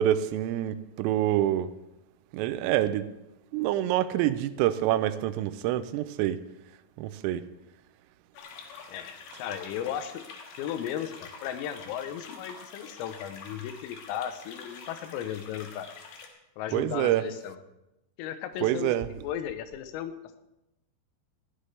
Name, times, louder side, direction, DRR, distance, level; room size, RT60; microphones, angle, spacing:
voice 1, 0.0-1.7 2.3-3.1 3.5-6.4 7.0-7.4 16.7-17.2 18.6-19.1, right 12 dB, 85° right, 3.3 m, -26 dB
sound 1, 8.3-16.3, left 5 dB, 60° left, 3.2 m, -46 dB
voice 2, 8.9-10.2 10.6-15.9 16.6-17.6 18.2-18.9 19.2-20.4, left 10 dB, 85° left, 3.6 m, -36 dB
20.0 x 14.5 x 3.3 m
omnidirectional pair, 5.9 m